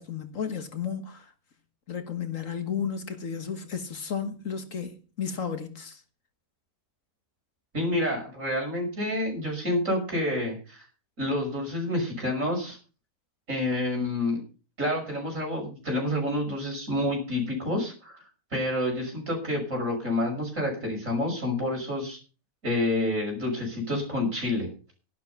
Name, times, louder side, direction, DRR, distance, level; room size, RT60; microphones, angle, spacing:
voice 1, 0.0-1.3 1.9-6.0, left 7 dB, 60° left, 1.9 m, -33 dB
voice 2, 7.7-10.9 11.2-12.8 13.5-14.4 14.8-18.2 18.5-22.2 22.6-24.7, left 1 dB, 60° right, 6.5 m, -28 dB
12.0 x 11.5 x 5.6 m
omnidirectional pair, 1.6 m